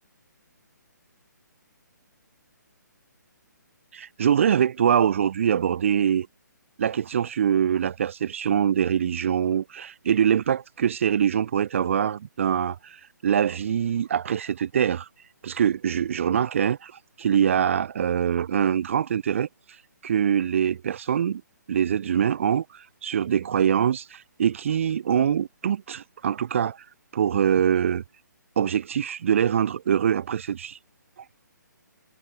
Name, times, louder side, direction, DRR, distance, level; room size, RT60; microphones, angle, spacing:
voice 1, 3.9-6.3 6.8-15.1 15.4-16.9 17.2-19.5 20.0-21.4 21.7-26.8 27.1-28.0 28.6-30.8, right 8 dB, 40° right, 0.4 m, -24 dB
figure-of-eight pair, 135°, 10 cm